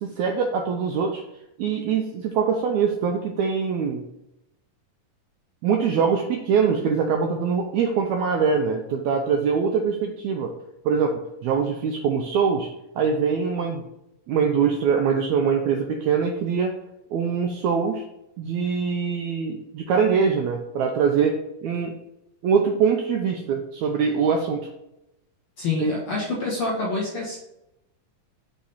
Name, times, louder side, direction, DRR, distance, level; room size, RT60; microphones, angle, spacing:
voice 1, 0.0-1.2 1.6-4.0 5.6-10.5 10.8-12.7 13.0-13.8 14.3-16.7 17.1-18.0 18.4-22.0 22.4-24.7 25.8-25.9, right 6 dB, 90° right, 3 dB, 1.6 m, -23 dB
voice 2, 25.6-27.4, left 3 dB, 55° left, -5 dB, 1.6 m, -27 dB
6.6 x 3.0 x 5.5 m, 0.86 s
omnidirectional pair, 3.9 m